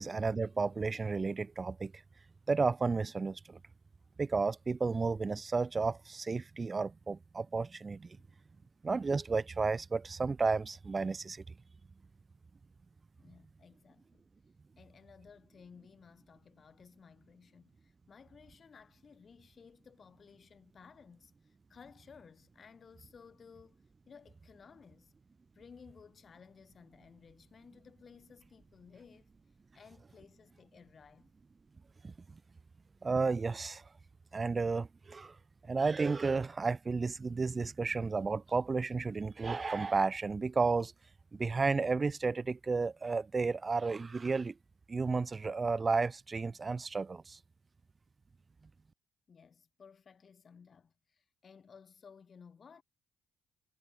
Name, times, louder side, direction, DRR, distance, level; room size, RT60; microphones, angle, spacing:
voice 1, 0.0-1.9 2.5-3.6 4.2-8.1 8.8-11.4 32.0-32.1 33.0-33.8 34.3-35.3 35.7-40.9 41.3-44.5 44.9-47.4, right 4 dB, 35° right, 1.2 m, -32 dB
voice 2, 13.2-14.3 14.8-25.1 25.5-29.3 29.7-31.3 49.3-52.8, left 6 dB, 50° left, 7.0 m, -57 dB
hypercardioid pair, 45°, 0 cm